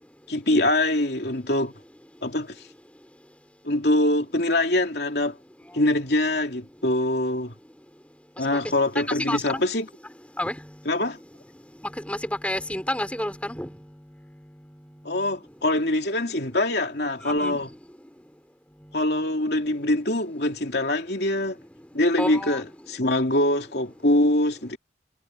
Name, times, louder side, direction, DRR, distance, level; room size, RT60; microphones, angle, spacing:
voice 1, 0.3-1.7 2.2-2.6 3.6-5.4 5.7-7.5 8.4-9.8 10.9-11.2 15.0-17.7 18.9-21.6 21.9-24.8, left 1 dB, 65° left, 2.9 m, -24 dB
voice 2, 9.1-9.6 10.4-10.5 12.0-13.7 17.3-17.6 22.2-22.6, left 1 dB, 5° left, 4.8 m, -29 dB
head